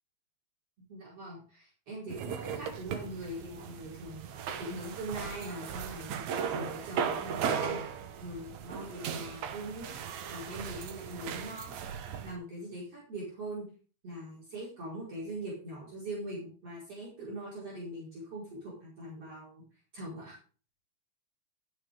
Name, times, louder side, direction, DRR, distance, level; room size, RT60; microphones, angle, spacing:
voice 1, 0.8-4.3 4.6-7.8 8.2-9.9 10.3-11.7 12.2-13.7 14.0-19.6 19.9-20.4, right 1 dB, 50° right, -6 dB, 6.0 m, -42 dB
sound 1, 2.1-12.4, right 7 dB, 75° right, 2.4 m, -37 dB
12.5 x 8.5 x 3.8 m, 0.38 s
omnidirectional pair, 3.4 m